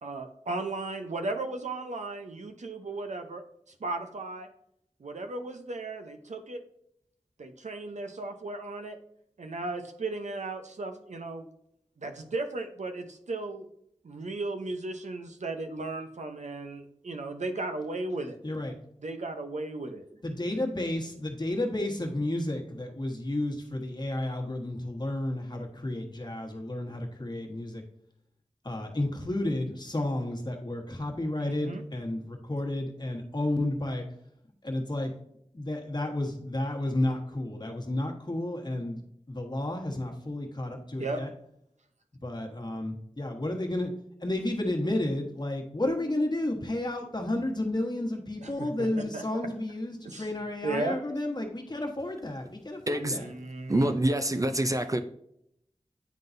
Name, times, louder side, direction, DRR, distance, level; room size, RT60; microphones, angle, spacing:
voice 1, 0.0-4.5 5.0-6.6 7.4-9.0 9.4-11.5 12.0-13.7 14.0-18.4 19.0-20.2 31.4-31.8 41.0-41.2 48.4-49.2 50.0-50.3 50.6-51.0 53.2-54.0, right 2 dB, 90° right, 7 dB, 0.7 m, -36 dB
voice 2, 18.4-18.7 20.2-27.8 28.6-34.0 34.6-35.1 35.5-39.0 39.3-41.3 42.2-43.9 44.2-53.3 53.8-54.0, left 1 dB, 40° left, 1 dB, 1.3 m, -32 dB
voice 3, 52.9-53.2 53.7-55.0, right 1 dB, 30° right, 7 dB, 0.4 m, -26 dB
9.4 x 3.8 x 2.6 m, 0.74 s
wide cardioid pair, 65°, 12 cm